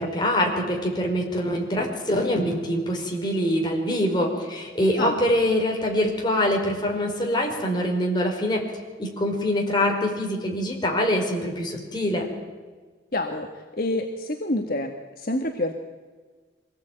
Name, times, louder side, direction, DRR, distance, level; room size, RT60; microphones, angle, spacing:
voice 1, 0.0-8.6 9.0-12.3, left 1 dB, 25° left, 0 dB, 4.6 m, -24 dB
voice 2, 13.1-13.5 13.8-15.8, left 1 dB, 50° left, 3 dB, 1.6 m, -27 dB
24.0 x 18.5 x 9.1 m, 1.4 s
head